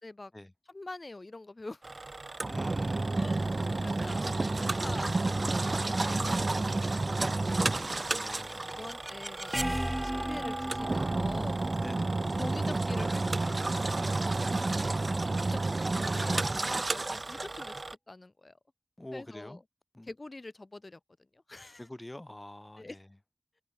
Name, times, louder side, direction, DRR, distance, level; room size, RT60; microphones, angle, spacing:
voice 1, 0.7-1.8 3.1-7.9 8.7-9.6 10.0-11.6 12.4-14.2 15.3-17.8 18.1-18.6 19.1-19.6 20.1-21.0 21.3-21.8 22.8-23.0, left 2 dB, 70° left, 1.1 m, -45 dB
Engine, 1.8-17.9, right 2 dB, 85° right, 0.3 m, -31 dB
voice 2, 2.4-3.2 8.1-8.9 11.8-12.2 14.5-15.2 19.0-19.6 19.9-20.1 21.8-23.2, left 1 dB, 35° left, 1.2 m, -46 dB
sound 1, 8.1-14.0, right 1 dB, 20° right, 1.3 m, -37 dB
wide cardioid pair, 45°, 0 cm